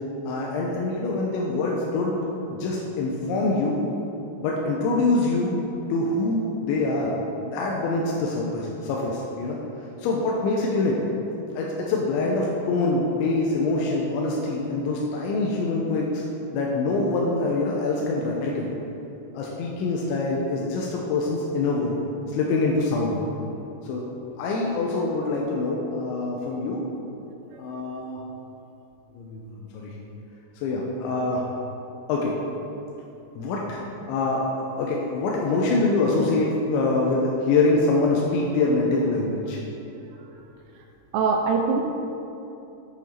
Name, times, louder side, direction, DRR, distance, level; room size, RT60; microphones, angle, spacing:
voice 1, 0.3-2.1 2.5-3.8 4.4-5.6 5.9-9.6 10.0-11.0 11.5-16.2 16.5-18.7 19.3-22.0 22.3-23.2 23.8-24.1 24.4-26.8 27.6-28.2 29.1-29.9 30.6-31.5 32.1-32.4 33.4-33.8 34.1-39.6, left 3 dB, 90° left, -2 dB, 3.0 m, -25 dB
voice 2, 41.1-41.8, right 5 dB, 85° right, 2 dB, 2.5 m, -22 dB
8.1 x 7.3 x 4.3 m, 2.9 s
omnidirectional pair, 5.3 m